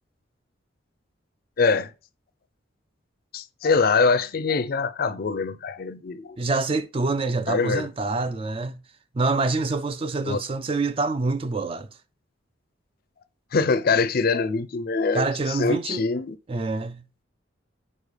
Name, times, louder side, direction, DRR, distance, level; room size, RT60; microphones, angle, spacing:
voice 1, 1.6-1.9 3.3-6.4 7.5-7.9 10.3-10.4 13.5-16.4, left 4 dB, 50° left, 0.4 m, -23 dB
voice 2, 6.4-8.8 9.1-11.9 15.1-16.0 16.5-17.0, right 3 dB, 30° right, 0.4 m, -26 dB
4.9 x 4.3 x 5.1 m
head